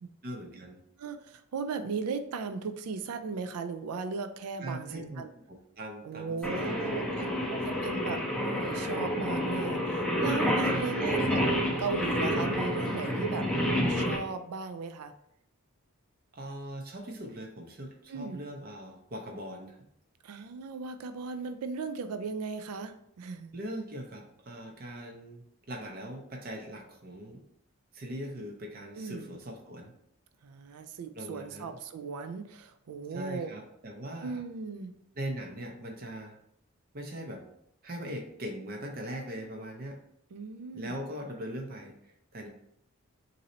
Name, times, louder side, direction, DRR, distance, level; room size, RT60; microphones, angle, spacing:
voice 1, 0.2-0.8 4.6-5.2 5.8-8.0 10.7-11.3 16.3-19.8 23.5-27.4 27.9-29.9 30.7-30.8 31.1-31.8 33.1-34.4 35.1-36.3 36.9-37.4 37.8-40.0 40.7-42.5, right 1 dB, 40° right, 1 dB, 0.6 m, -41 dB
voice 2, 1.0-5.3 6.0-13.5 13.9-15.1 18.1-18.4 20.2-23.5 29.0-29.3 30.4-33.5 34.2-34.9 40.3-40.9, right 5 dB, 90° right, 9 dB, 0.4 m, -37 dB
Singing, 6.4-14.2, equal, 5° left, 0.5 m, -29 dB
3.9 x 2.7 x 4.1 m, 0.73 s
head